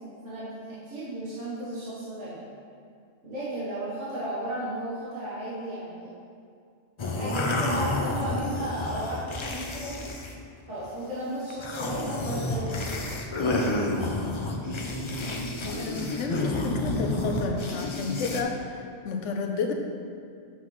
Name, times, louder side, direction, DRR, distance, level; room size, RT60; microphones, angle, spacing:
voice 1, 0.2-2.4 3.2-6.1 7.1-10.0 10.7-12.8, right 1 dB, 85° right, -10 dB, 1.7 m, -34 dB
sound 1, 7.0-10.4 10.7-11.0 11.5-18.4, left 2 dB, 45° left, 0.4 m, -30 dB
voice 2, 15.3-19.7, left 4 dB, 80° left, 3 dB, 1.0 m, -32 dB
7.3 x 5.7 x 3.1 m, 2.3 s
omnidirectional pair, 1.2 m